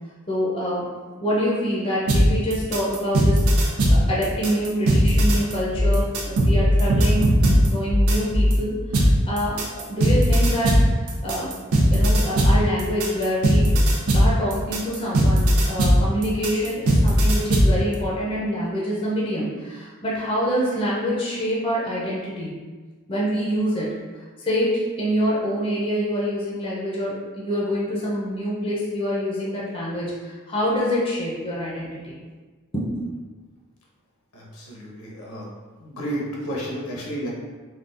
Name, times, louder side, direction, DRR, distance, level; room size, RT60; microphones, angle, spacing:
voice 1, 0.3-0.9 1.2-11.5 11.9-13.8 14.1-22.5 23.1-23.9 24.4-32.2 32.7-33.1, equal, 25° left, -6 dB, 0.6 m, -26 dB
sound 1, 2.1-8.6 8.9-17.8, equal, 80° right, 0.5 m, -18 dB
voice 2, 34.3-35.5 35.8-37.3, equal, 80° left, -4 dB, 0.8 m, -32 dB
3.7 x 2.2 x 2.5 m, 1.4 s
head